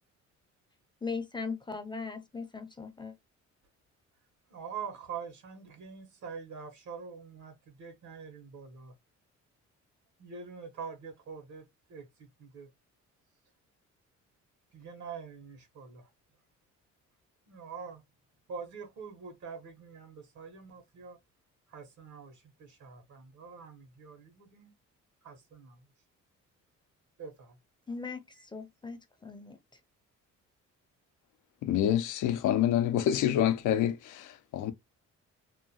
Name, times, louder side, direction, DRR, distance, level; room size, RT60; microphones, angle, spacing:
voice 1, 1.0-3.1 27.9-29.6, left 4 dB, 15° left, 0.5 m, -39 dB
voice 2, 4.5-8.9 10.2-12.7 14.7-16.1 17.5-18.0 18.5-21.2 21.7-24.7 25.2-25.9 27.2-27.6, right 6 dB, 70° right, 1.3 m, -45 dB
voice 3, 31.6-34.7, left 11 dB, 80° left, 0.5 m, -27 dB
2.8 x 2.2 x 2.8 m
cardioid pair, 90°, 30 cm